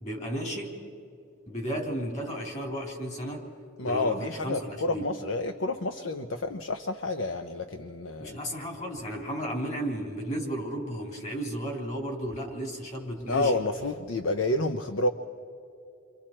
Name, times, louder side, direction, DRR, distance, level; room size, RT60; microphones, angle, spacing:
voice 1, 0.0-0.8 1.5-3.5 3.8-5.1 8.2-13.6, right 1 dB, 35° left, 1 dB, 3.1 m, -34 dB
voice 2, 3.8-8.4 13.3-15.1, left 2 dB, 65° left, 7 dB, 0.7 m, -29 dB
29.0 x 25.0 x 4.4 m, 2.7 s
head